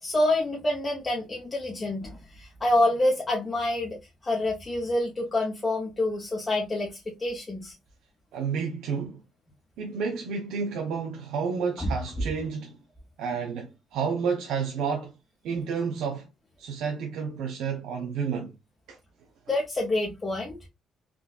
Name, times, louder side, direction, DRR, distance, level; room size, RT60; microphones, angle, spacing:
voice 1, 0.0-4.0 4.2-7.7 11.8-11.9 19.5-20.6, left 1 dB, 30° left, 0.8 m, -27 dB
voice 2, 8.3-9.2 9.8-12.8 13.2-15.1 15.4-16.3 16.6-18.5 18.9-19.0, right 6 dB, 85° right, 0.6 m, -30 dB
3.7 x 2.3 x 2.3 m
cardioid pair, 90°, 0 cm